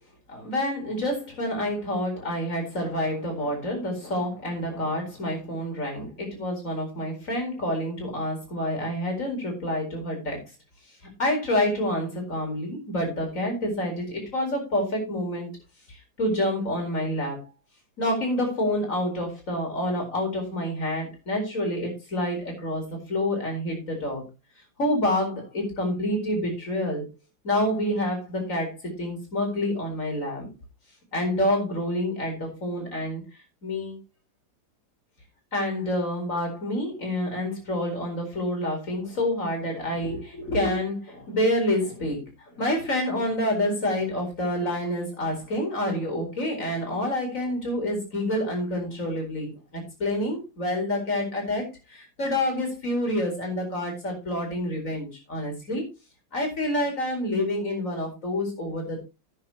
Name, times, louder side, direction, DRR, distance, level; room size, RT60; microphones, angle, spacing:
voice 1, 0.3-10.4 11.2-15.5 15.9-17.5 18.0-24.2 24.8-27.1 27.4-30.5 31.1-33.2 33.6-34.0 35.5-55.8 56.3-59.0, left 1 dB, 40° left, 2 dB, 4.8 m, -28 dB
13.5 x 9.6 x 2.9 m, 0.27 s
omnidirectional pair, 2.1 m